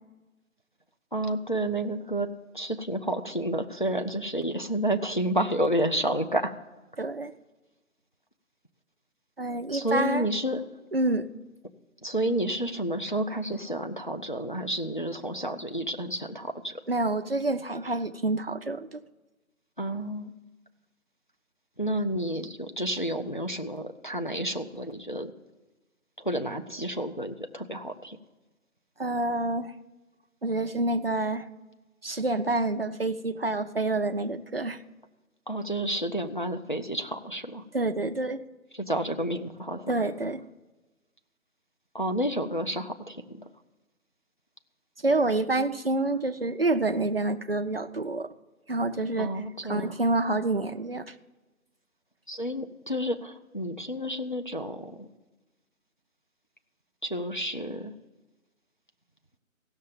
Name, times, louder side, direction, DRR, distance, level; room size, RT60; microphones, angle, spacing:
voice 1, 1.1-2.3 2.5-6.5 9.7-10.6 12.0-16.8 19.8-20.3 21.8-25.3 26.2-28.2 35.5-37.6 38.7-39.9 41.9-43.5 49.2-50.0 52.3-55.1 57.0-57.9, right 1 dB, 35° left, 5 dB, 0.5 m, -30 dB
voice 2, 7.0-7.3 9.4-10.3 10.9-11.3 16.9-19.0 29.0-29.7 30.4-31.5 32.0-34.8 37.7-38.4 39.9-40.4 45.0-48.3 48.7-49.3 49.7-51.1, right 2 dB, 45° right, 8 dB, 0.5 m, -27 dB
16.0 x 6.6 x 7.1 m, 1.2 s
figure-of-eight pair, 175°, 42 cm